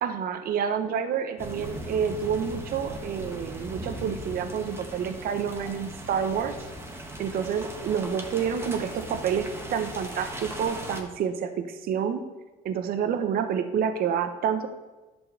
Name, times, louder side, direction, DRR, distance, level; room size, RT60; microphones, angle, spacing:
voice 1, 0.0-6.6 7.2-12.2 12.6-14.7, right 7 dB, 60° right, 9 dB, 0.8 m, -28 dB
sound 1, 1.4-11.0, right 1 dB, 15° right, 1.4 m, -39 dB
11.0 x 4.5 x 6.8 m, 1.2 s
cardioid pair, 110°, 17 cm